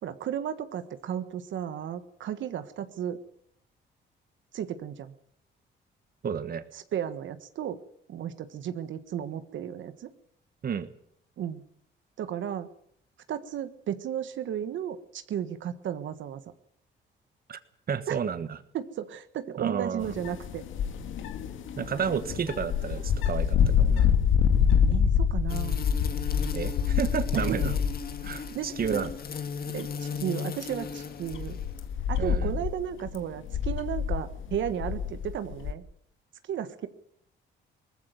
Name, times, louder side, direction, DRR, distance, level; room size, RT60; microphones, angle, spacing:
voice 1, 0.0-3.2 4.5-5.1 6.7-7.8 8.1-10.1 11.4-11.6 12.2-12.7 13.3-16.4 18.1-18.2 18.7-20.6 24.9-25.8 27.3-27.7 28.5-29.0 29.7-31.6 32.1-35.8 36.5-36.9, right 9 dB, 70° right, 11 dB, 1.5 m, -34 dB
voice 2, 6.2-6.6 10.6-10.9 17.5-17.6 17.9-18.6 19.6-20.1 21.8-24.1 26.5-27.7 28.2-29.1 32.2-32.5, right 7 dB, 50° right, 12 dB, 1.5 m, -31 dB
sound 1, 20.0-28.5 28.8-29.3 29.8-29.9 30.8-35.7, left 7 dB, 80° left, 1.9 m, -27 dB
sound 2, 25.5-31.9, left 6 dB, 50° left, 2.2 m, -37 dB
19.5 x 15.0 x 9.2 m, 0.68 s
cardioid pair, 90°, 20 cm